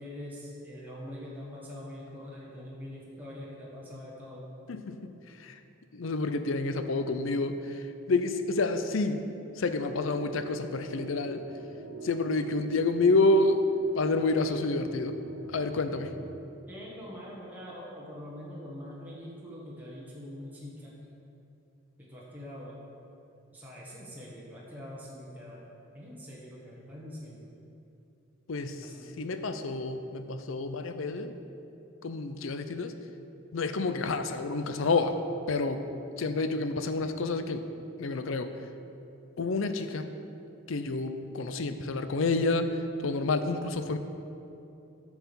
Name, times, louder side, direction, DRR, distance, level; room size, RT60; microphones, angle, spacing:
voice 1, 0.0-4.5 16.7-21.0 22.1-22.8 23.5-27.5 28.8-29.1 35.9-36.3, left 1 dB, 10° right, -6 dB, 1.3 m, -44 dB
voice 2, 4.7-5.1 5.4-5.6 5.9-9.2 9.6-11.4 12.0-13.6 13.9-15.2 15.5-16.1 28.5-28.9 29.2-31.3 32.0-33.0 33.5-35.2 35.5-35.8 36.2-37.6 38.0-38.5 39.4-40.1 40.7-42.7 43.0-44.0, left 3 dB, 75° left, 9 dB, 0.6 m, -29 dB
sound 1, 9.7-16.5, right 3 dB, 65° right, 0.5 m, -44 dB
9.3 x 4.8 x 6.9 m, 2.8 s
head